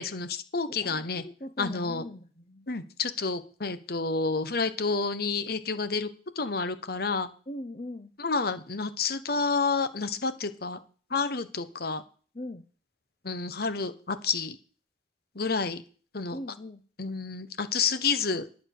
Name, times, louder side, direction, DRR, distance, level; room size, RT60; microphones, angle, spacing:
voice 1, 0.0-1.2 1.6-2.0 2.7-6.1 6.3-7.3 8.2-10.8 11.1-12.0 13.2-14.5 15.3-15.8 16.1-16.4 17.0-18.5, left 4 dB, 60° left, 11 dB, 1.3 m, -29 dB
voice 2, 0.7-2.7 7.5-8.1 12.3-12.6 16.3-16.8, left 1 dB, 35° left, 8 dB, 0.9 m, -40 dB
11.5 x 7.3 x 6.7 m, 0.39 s
head